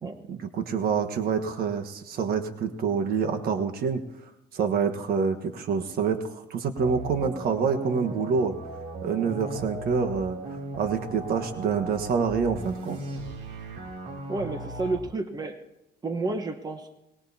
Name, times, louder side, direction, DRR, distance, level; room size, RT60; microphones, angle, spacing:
voice 1, 0.3-4.0 4.5-8.6 9.0-10.4 10.8-13.0, right 6 dB, 65° right, 7 dB, 1.5 m, -27 dB
sound 1, 6.8-15.0, right 2 dB, 80° right, 3.0 m, -37 dB
voice 2, 14.3-15.6 16.0-16.9, right 3 dB, 25° right, 5 dB, 1.2 m, -31 dB
23.0 x 19.5 x 2.9 m, 0.92 s
cardioid pair, 110°, 17 cm